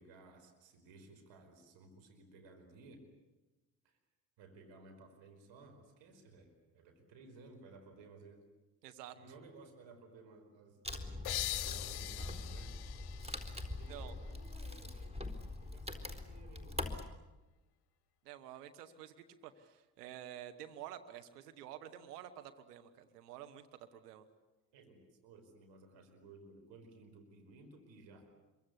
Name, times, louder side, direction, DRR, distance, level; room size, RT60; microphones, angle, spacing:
voice 1, 0.0-3.1 3.9-4.0 4.4-8.4 9.1-12.7 13.7-16.9 24.7-28.3, right 3 dB, 70° right, 5 dB, 5.1 m, -58 dB
voice 2, 8.8-9.1 13.9-14.2 18.2-19.1 19.4-23.7 23.9-24.3, right 11 dB, 90° right, 9 dB, 1.3 m, -50 dB
Wood, 10.8-17.0, left 2 dB, 15° right, 4.2 m, -43 dB
sound 1, 11.2-14.7, left 16 dB, 55° left, 0.8 m, -42 dB
26.5 x 24.0 x 8.4 m, 1.1 s
hypercardioid pair, 50°, 46 cm